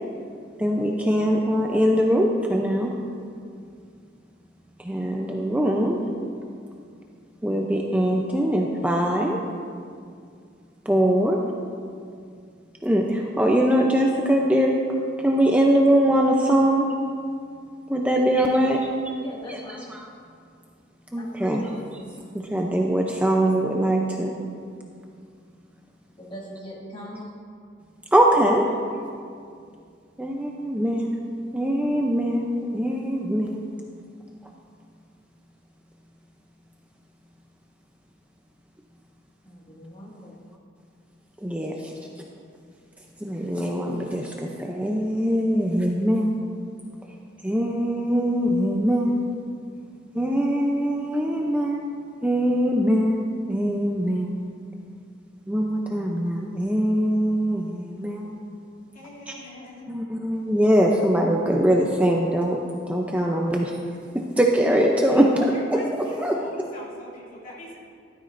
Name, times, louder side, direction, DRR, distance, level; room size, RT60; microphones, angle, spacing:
voice 1, 0.6-2.9 4.8-6.0 7.4-9.4 10.9-11.4 12.8-16.9 17.9-19.2 19.5-19.6 19.9-20.1 21.1-21.7 22.3-24.4 28.1-28.6 30.2-31.1 31.5-33.6 41.4-41.9 43.2-46.4 47.4-49.3 50.1-51.9 52.2-54.4 55.5-58.4 59.9-62.6 62.9-63.7 64.1-65.3 65.7-65.8 66.2-66.3, equal, 10° right, 0 dB, 0.5 m, -22 dB
voice 2, 19.2-19.9 21.2-21.8 26.2-27.2 39.5-40.3, equal, 30° left, -4 dB, 2.0 m, -40 dB
voice 3, 58.9-59.9 65.1-67.8, equal, 45° left, -6 dB, 2.8 m, -40 dB
14.0 x 12.5 x 2.6 m, 2.3 s
head